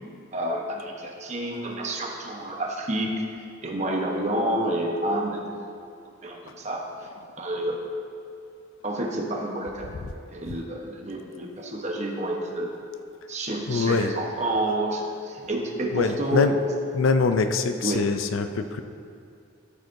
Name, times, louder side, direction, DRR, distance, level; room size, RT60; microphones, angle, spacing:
voice 1, 0.3-3.2 3.6-5.6 6.2-6.8 7.4-7.8 8.8-9.9 10.3-12.7 13.3-16.5 17.8-18.0, right 1 dB, 35° right, 0 dB, 0.9 m, -29 dB
voice 2, 13.7-14.1 15.9-16.6 16.9-18.8, left 4 dB, 70° left, 8 dB, 0.4 m, -23 dB
13.5 x 8.1 x 2.6 m, 2.4 s
head